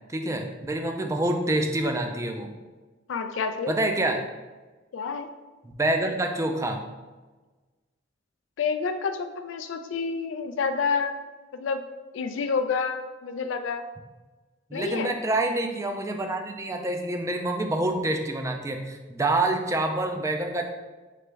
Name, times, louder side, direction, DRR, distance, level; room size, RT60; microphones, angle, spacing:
voice 1, 0.1-2.5 3.7-4.2 5.6-6.8 14.7-20.6, right 2 dB, 15° right, 4 dB, 0.4 m, -27 dB
voice 2, 3.1-3.7 4.9-5.3 8.6-11.2 11.5-11.8 12.1-13.8 14.7-15.1, left 5 dB, 85° left, 8 dB, 0.4 m, -28 dB
3.9 x 3.3 x 3.3 m, 1.3 s
head